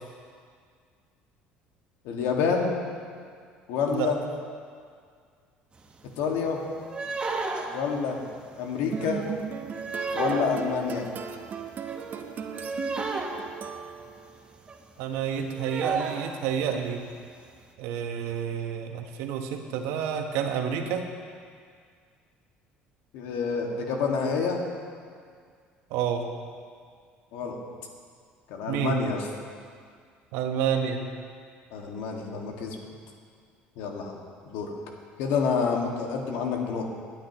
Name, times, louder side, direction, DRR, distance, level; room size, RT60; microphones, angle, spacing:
voice 1, 2.0-2.8 3.7-4.2 6.2-6.6 7.7-8.2 8.6-9.2 10.1-11.1 23.1-24.6 27.3-27.6 28.5-29.2 31.7-32.8 33.8-34.2 34.5-34.7 35.2-36.8, left 5 dB, 80° left, 1 dB, 1.8 m, -28 dB
sound 1, 5.8-5.9 6.1-6.4 6.8-14.2 14.5-14.8 15.1-15.2 15.4-16.7 17.0-17.1 17.5-17.6, right 3 dB, 25° right, 1.2 m, -34 dB
sound 2, 8.9-14.3, right 7 dB, 45° right, 0.8 m, -37 dB
voice 2, 15.0-17.0 17.8-21.0 25.9-26.2 28.7-29.0 30.3-31.0, right 8 dB, 80° right, 5 dB, 1.1 m, -29 dB
20.0 x 8.9 x 3.0 m, 2.1 s
supercardioid pair, 95°, 4 cm